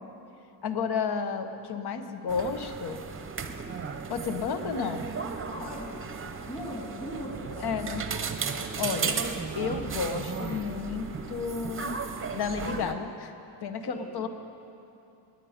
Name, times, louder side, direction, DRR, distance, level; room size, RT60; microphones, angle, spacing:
voice 1, 0.6-3.0 4.1-5.0 7.6-8.0 8.8-9.2 9.6-12.0 12.3-13.3 13.6-14.3, left 5 dB, 60° left, 8 dB, 0.9 m, -32 dB
sound 1, 2.3-12.9, right 5 dB, 30° right, 0.7 m, -35 dB
voice 2, 5.5-7.9 13.9-14.2, equal, 20° left, -4 dB, 3.1 m, -40 dB
19.0 x 9.3 x 5.1 m, 2.8 s
cardioid pair, 135°, 44 cm